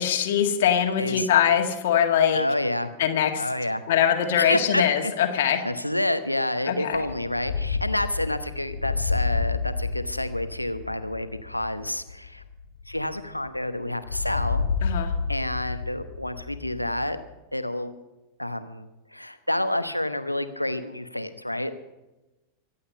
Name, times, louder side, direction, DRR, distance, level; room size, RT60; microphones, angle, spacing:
voice 1, 0.0-2.4 3.0-3.4 3.9-5.6 6.7-7.0 14.8-15.1, left 9 dB, 55° left, 4 dB, 1.8 m, -22 dB
voice 2, 1.0-1.3 2.3-2.9 3.4-3.8 4.4-5.1 5.6-12.4 12.9-14.7 15.3-17.2 17.5-17.9 18.4-21.7, left 1 dB, 90° left, 10 dB, 1.0 m, -29 dB
sound 1, 6.9-13.6 14.1-17.2, left 5 dB, 70° left, 1.2 m, -30 dB
24.0 x 8.6 x 5.4 m, 1.1 s
figure-of-eight pair, 90°, 0 cm